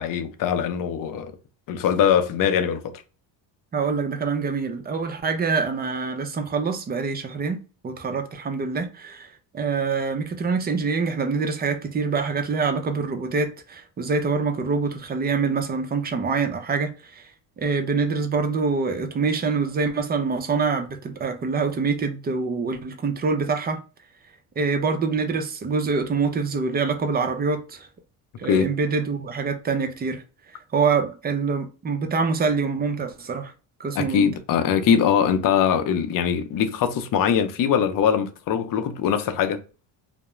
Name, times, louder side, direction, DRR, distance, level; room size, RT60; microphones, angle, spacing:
voice 1, 0.0-1.3 1.7-2.9 28.5-28.7 33.9-39.6, left 8 dB, 45° left, 0.6 m, -22 dB
voice 2, 3.7-17.3 17.6-23.8 24.6-27.9 28.4-30.2 30.7-33.5 33.8-34.3, right 4 dB, 20° right, 0.4 m, -25 dB
2.3 x 2.0 x 3.0 m
cardioid pair, 120°, 45 cm